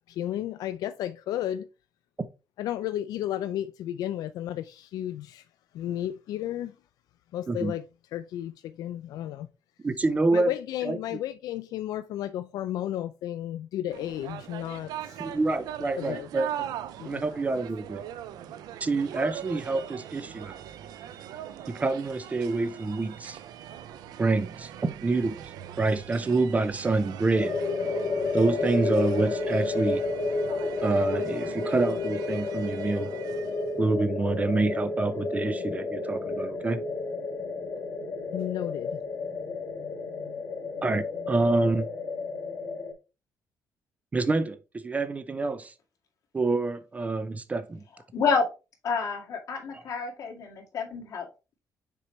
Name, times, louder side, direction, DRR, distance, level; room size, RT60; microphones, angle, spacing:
voice 1, 0.1-1.7 2.6-5.4 5.7-6.8 7.3-9.5 10.3-15.2 16.0-16.3 17.0-17.2 38.3-39.0, left 12 dB, 80° left, 0.4 m, -33 dB
voice 2, 9.8-10.5 10.8-11.0 15.2-16.8 17.0-18.0 18.8-20.6 21.7-23.4 24.2-27.5 28.3-30.0 30.8-33.1 33.8-36.8 40.8-41.9 44.1-45.7 46.3-47.8 49.7-49.8, right 3 dB, 20° right, 0.5 m, -27 dB
sound 1, 13.9-33.7, right 11 dB, 85° right, 0.5 m, -41 dB
sound 2, 27.3-42.9, left 3 dB, 35° left, 1.6 m, -31 dB
voice 3, 48.1-48.5 48.8-51.3, left 5 dB, 55° left, 2.0 m, -28 dB
6.7 x 4.5 x 3.1 m
cardioid pair, 120°, 7 cm